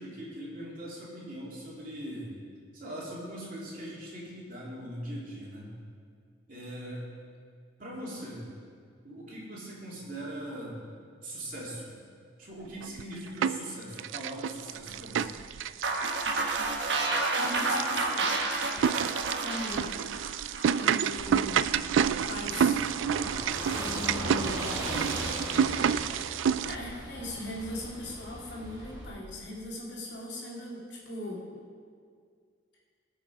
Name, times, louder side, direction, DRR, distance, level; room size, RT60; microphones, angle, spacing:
voice 1, 0.0-2.3 2.7-5.7 6.5-7.0 7.8-8.4 9.0-10.8 11.2-11.9 12.4-15.4, right 1 dB, 45° right, -5 dB, 3.0 m, -40 dB
sound 1, 12.8-13.7 14.0-26.7, right 8 dB, 90° right, 0.3 m, -29 dB
sound 2, 15.8-21.0, right 3 dB, 65° right, 1.3 m, -30 dB
voice 2, 17.3-18.3 19.4-19.9 20.8-21.6 22.3-22.8 23.7-24.8 26.7-31.4, left 1 dB, 65° left, -4 dB, 2.5 m, -39 dB
Car passing by / Engine, 21.2-29.1, equal, 20° right, 2.0 m, -38 dB
18.5 x 6.3 x 4.8 m, 2.1 s
head